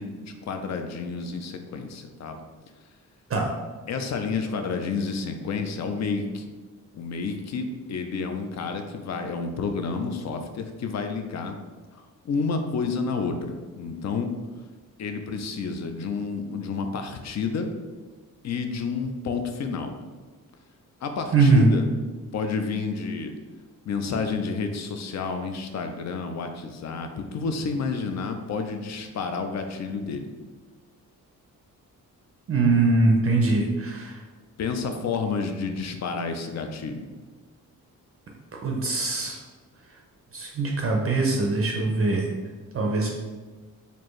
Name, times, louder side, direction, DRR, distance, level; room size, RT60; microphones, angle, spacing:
voice 1, 0.0-2.4 3.9-6.5 6.9-11.6 12.2-14.3 15.0-17.7 18.4-19.9 21.0-21.9 22.3-23.3 23.9-30.3 34.6-37.1, left 4 dB, 55° left, 6 dB, 0.5 m, -30 dB
voice 2, 21.3-21.7 32.5-34.2 38.5-39.4 40.3-42.3 42.7-43.1, right 3 dB, 40° right, 1 dB, 0.5 m, -22 dB
4.4 x 2.6 x 3.1 m, 1.4 s
wide cardioid pair, 140°, 33 cm